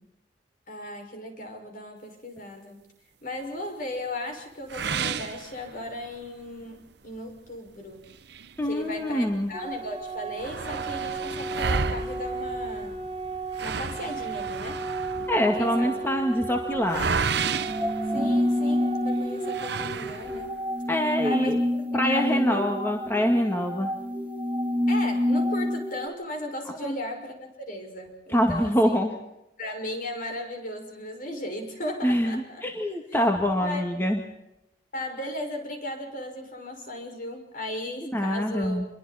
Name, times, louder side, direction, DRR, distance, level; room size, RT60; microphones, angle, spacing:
voice 1, 0.7-2.8 3.2-8.0 8.7-13.0 13.6-14.8 15.6-16.0 18.0-20.5 21.2-22.7 24.9-29.0 29.6-32.6 33.6-33.8 34.9-38.8, left 1 dB, 50° left, 3 dB, 6.1 m, -36 dB
sound 1, 4.7-6.2 6.6-6.7 7.2-7.3 8.0-9.4 9.7-9.8 10.0-18.8 19.4-20.6, right 5 dB, 65° right, 0.9 m, -32 dB
voice 2, 8.6-9.5 15.3-17.1 20.9-21.6 21.9-23.9 26.8-26.9 28.3-29.1 32.0-34.2 38.0-38.9, equal, 15° left, 2 dB, 2.0 m, -25 dB
Organ, 9.5-20.5, right 3 dB, 30° right, 2.1 m, -35 dB
sound 2, 17.5-26.1, left 1 dB, 10° right, 3.1 m, -27 dB
28.0 x 22.5 x 4.4 m, 0.88 s
head